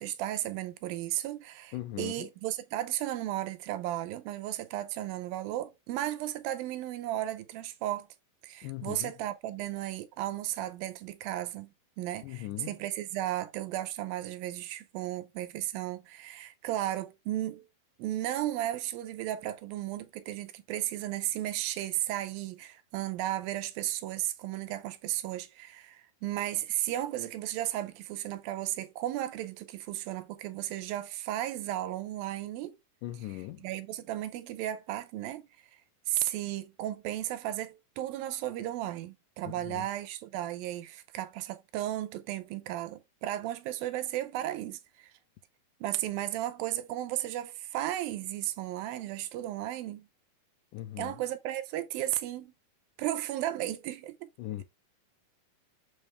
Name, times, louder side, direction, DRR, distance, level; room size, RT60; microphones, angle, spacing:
voice 1, 0.0-8.1 8.4-17.6 18.0-32.8 33.3-35.5 36.1-45.1 45.8-50.1 51.0-52.5 53.0-54.3, right 13 dB, 80° right, 2.4 m, -34 dB
voice 2, 1.7-2.3 8.6-9.1 12.2-12.7 33.0-33.6 39.5-39.9 50.7-51.2 54.4-54.6, left 15 dB, 80° left, 2.0 m, -39 dB
7.0 x 4.5 x 3.3 m
omnidirectional pair, 4.3 m